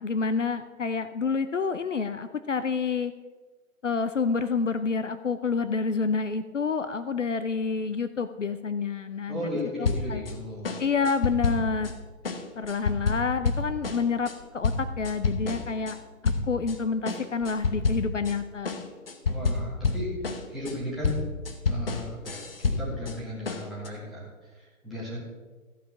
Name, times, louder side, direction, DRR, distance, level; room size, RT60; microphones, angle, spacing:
voice 1, 0.0-3.1 3.8-9.5 9.8-10.2 10.8-11.9 12.6-16.0 16.2-18.9, left 5 dB, 60° left, 11 dB, 0.6 m, -28 dB
voice 2, 9.3-10.7 19.3-20.1 20.5-21.2 21.7-24.3 24.8-25.2, left 1 dB, ahead, -10 dB, 2.0 m, -35 dB
sound 1, 9.8-10.3 10.6-11.9 12.2-16.0 16.2-16.8 17.1-18.4 18.7-23.2 23.5-23.9, left 4 dB, 40° left, 1.0 m, -29 dB
14.5 x 5.5 x 6.2 m, 1.3 s
figure-of-eight pair, 145°, 42 cm